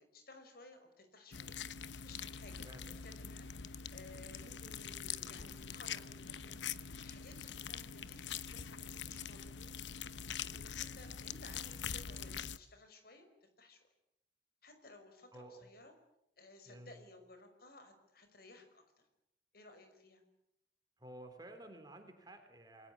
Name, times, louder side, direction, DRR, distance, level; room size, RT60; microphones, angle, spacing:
voice 1, 0.0-1.6 2.0-2.7 3.0-9.7 10.4-13.8 14.6-15.9 16.4-18.8 19.5-20.2, left 2 dB, 55° left, 7 dB, 5.6 m, -58 dB
sound 1, 1.3-12.6, left 7 dB, 90° left, 0.9 m, -44 dB
voice 2, 15.3-15.7 16.7-17.0 21.0-22.9, right 1 dB, 20° right, 5 dB, 3.4 m, -53 dB
29.0 x 21.5 x 8.6 m, 0.81 s
head